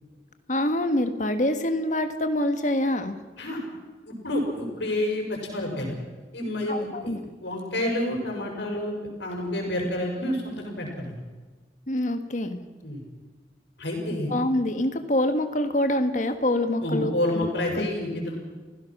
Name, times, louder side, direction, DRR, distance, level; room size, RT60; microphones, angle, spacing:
voice 1, 0.5-3.2 6.7-7.2 11.9-12.6 14.3-17.5 17.8-17.9, left 1 dB, 45° left, 7 dB, 1.6 m, -25 dB
voice 2, 4.1-5.9 6.3-8.9 9.2-11.2 12.8-13.0 13.8-14.3 16.8-18.3, left 1 dB, 85° left, 1 dB, 6.4 m, -29 dB
30.0 x 16.5 x 6.1 m, 1.3 s
head